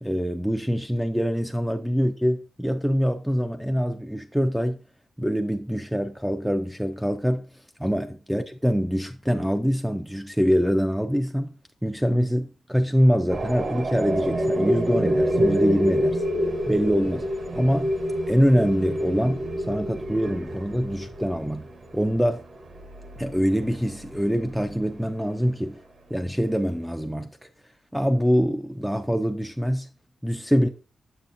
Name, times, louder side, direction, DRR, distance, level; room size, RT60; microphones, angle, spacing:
voice 1, 0.0-4.8 5.2-7.4 7.8-11.5 11.8-16.2 16.7-17.3 17.5-17.9 18.3-21.7 21.9-22.4 23.2-25.8 26.1-27.5 27.9-29.9 30.2-30.7, equal, ahead, 0.3 m, -24 dB
sound 1, 13.3-24.9, equal, 45° right, 0.8 m, -27 dB
7.0 x 6.8 x 2.5 m
wide cardioid pair, 160°, 0 cm